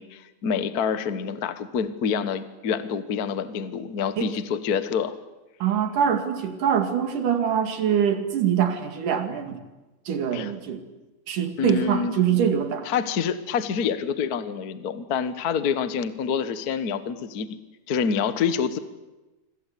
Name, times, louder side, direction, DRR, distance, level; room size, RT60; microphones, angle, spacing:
voice 1, 0.0-5.1 10.3-10.5 11.6-12.1 12.8-17.6 17.9-18.8, left 7 dB, 55° left, 12 dB, 1.0 m, -27 dB
voice 2, 5.6-9.6 10.1-10.8 11.3-12.9, right 8 dB, 90° right, 8 dB, 3.8 m, -24 dB
26.5 x 26.5 x 8.4 m, 1.1 s
omnidirectional pair, 3.6 m